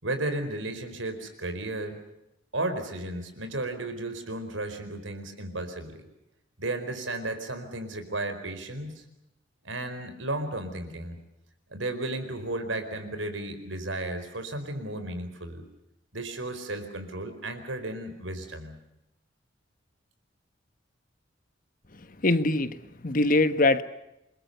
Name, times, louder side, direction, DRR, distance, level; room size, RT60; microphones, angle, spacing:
voice 1, 0.0-2.0 2.5-6.0 6.6-9.0 9.6-11.2 11.7-15.6 16.1-18.8, right 2 dB, 90° right, 4.7 m, -34 dB
voice 2, 22.2-23.8, left 2 dB, 45° left, 1.3 m, -23 dB
28.5 x 22.0 x 6.8 m
head